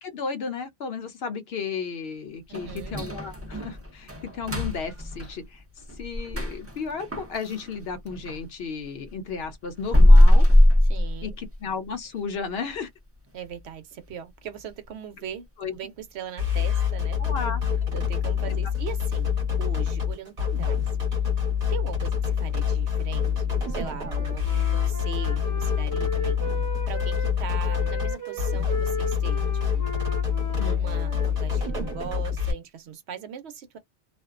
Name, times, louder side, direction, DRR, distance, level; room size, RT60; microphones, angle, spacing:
voice 1, 0.0-5.6 6.0-10.5 11.2-12.9 15.6-15.8 17.2-17.6 30.6-30.8, left 5 dB, 65° left, 0.8 m, -33 dB
sound 1, 2.5-8.5 8.8-11.7 12.0-12.1 12.6-12.7 13.3-13.6 13.9-14.0 14.6-14.7, left 1 dB, 20° right, 0.5 m, -21 dB
voice 2, 2.5-3.0 10.9-11.3 13.3-17.2 17.9-20.9 21.7-29.9 30.5-33.8, right 8 dB, 70° right, 0.9 m, -40 dB
sound 2, 16.4-32.5, left 7 dB, 40° right, 0.9 m, -26 dB
Wind instrument woodwind instrument, 23.6-27.4 27.7-32.2, equal, 20° left, 0.7 m, -36 dB
2.4 x 2.1 x 2.3 m
omnidirectional pair, 1.2 m